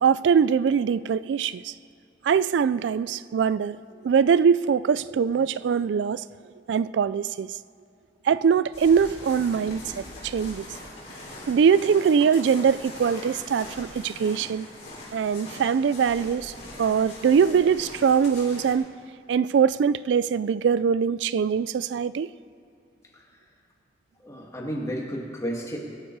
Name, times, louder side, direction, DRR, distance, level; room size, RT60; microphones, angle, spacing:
voice 1, 0.0-1.7 2.2-3.8 4.0-6.2 6.7-7.5 8.3-10.7 11.5-14.7 15.1-16.5 16.8-18.9 19.3-22.3, right 6 dB, 80° right, 17 dB, 0.3 m, -22 dB
sound 1, 8.7-18.7, left 2 dB, 40° left, 3.6 m, -42 dB
voice 2, 24.2-25.8, equal, 15° left, -2 dB, 2.1 m, -32 dB
22.5 x 9.8 x 4.7 m, 2.5 s
head